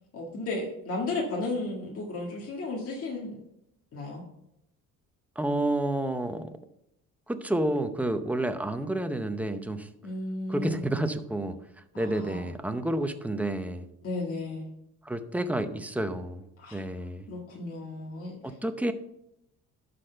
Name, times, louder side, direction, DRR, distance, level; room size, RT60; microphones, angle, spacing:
voice 1, 0.1-3.4 3.9-4.2 10.0-10.9 11.9-12.5 14.0-14.7 16.6-16.8 17.3-18.5, left 2 dB, 50° left, -2 dB, 1.8 m, -34 dB
voice 2, 5.4-6.5 7.3-9.9 10.5-11.6 12.0-13.8 15.1-16.4 16.7-17.3 18.4-18.9, right 1 dB, 5° right, 9 dB, 0.7 m, -30 dB
11.5 x 4.2 x 5.5 m, 0.81 s
cardioid pair, 110°, 30 cm